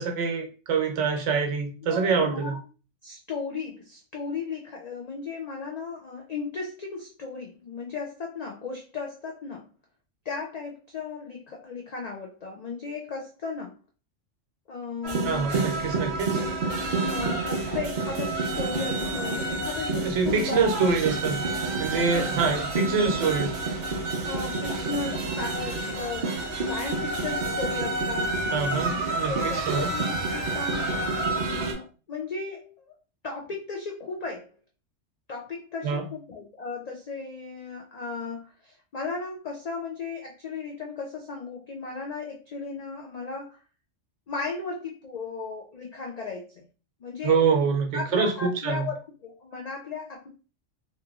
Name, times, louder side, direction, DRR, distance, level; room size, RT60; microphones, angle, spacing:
voice 1, 0.0-2.5 15.2-16.4 20.0-21.4 21.8-23.5 28.5-29.9 35.8-36.0 47.2-48.9, right 5 dB, 75° right, 3 dB, 1.0 m, -25 dB
voice 2, 1.9-2.6 3.0-9.7 10.2-13.8 14.7-15.5 17.0-20.6 21.9-22.2 24.2-28.3 28.9-32.9 33.2-34.5 35.3-43.6 44.3-46.6 47.0-47.4 47.9-50.3, left 4 dB, 85° left, 0 dB, 0.3 m, -36 dB
sound 1, 15.0-31.7, right 2 dB, 55° right, 0.5 m, -29 dB
2.9 x 2.5 x 2.3 m, 0.36 s
omnidirectional pair, 1.3 m